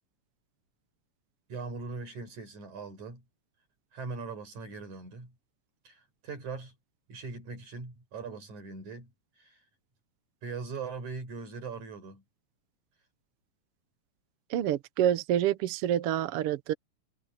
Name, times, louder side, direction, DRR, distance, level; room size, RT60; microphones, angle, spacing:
voice 1, 1.5-3.2 3.9-5.3 5.8-6.7 7.1-9.1 9.4-9.6 10.4-12.2, right 4 dB, 80° right, 6.8 m, -40 dB
voice 2, 14.5-16.7, right 11 dB, 65° right, 1.6 m, -27 dB
omnidirectional pair, 3.4 m